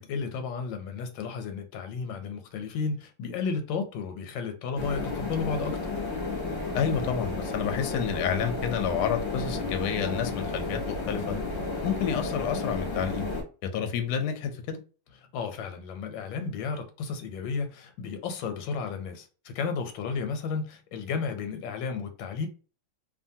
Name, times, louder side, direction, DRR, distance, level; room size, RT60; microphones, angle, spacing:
voice 1, 0.0-5.8 15.3-22.5, left 5 dB, 90° left, 1.3 m, -33 dB
sound 1, 4.8-13.4, left 3 dB, 50° left, 0.8 m, -32 dB
voice 2, 6.7-11.4 11.8-13.3 13.6-14.8, left 7 dB, 75° left, 1.0 m, -29 dB
2.8 x 2.5 x 2.6 m
omnidirectional pair, 2.0 m